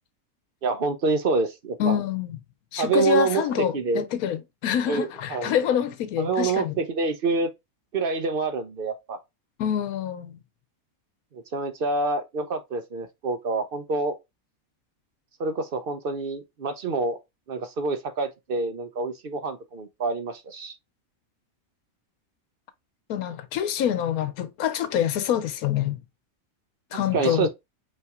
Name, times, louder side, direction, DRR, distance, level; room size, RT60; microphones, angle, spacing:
voice 1, 0.6-2.0 2.8-4.1 4.9-5.5 6.2-7.5 7.9-9.2 11.3-14.2 15.4-17.2 17.5-20.7 27.1-27.5, right 4 dB, 55° right, 0.7 m, -27 dB
voice 2, 1.8-2.4 2.7-6.7 9.6-10.4 23.1-26.0 26.9-27.5, left 9 dB, 90° left, 1.2 m, -26 dB
5.5 x 3.2 x 2.3 m
omnidirectional pair, 1.5 m